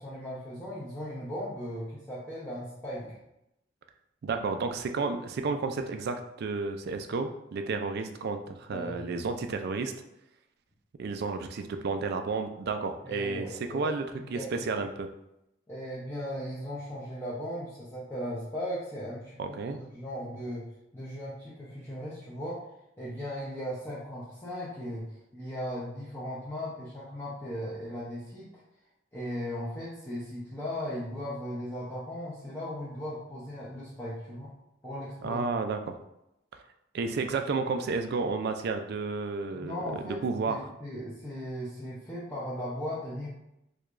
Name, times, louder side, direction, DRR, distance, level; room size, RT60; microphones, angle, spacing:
voice 1, 0.0-3.2 8.7-9.0 13.0-14.7 15.7-20.7 20.9-22.7 23.0-28.6 29.1-34.5 34.8-35.4 39.5-43.3, equal, 10° left, -10 dB, 0.6 m, -37 dB
voice 2, 4.2-9.9 11.0-13.5 13.7-14.1 14.3-15.1 19.4-19.8 35.2-35.9 36.9-40.6, right 4 dB, 50° right, 7 dB, 0.3 m, -31 dB
4.6 x 2.3 x 2.5 m, 0.85 s
head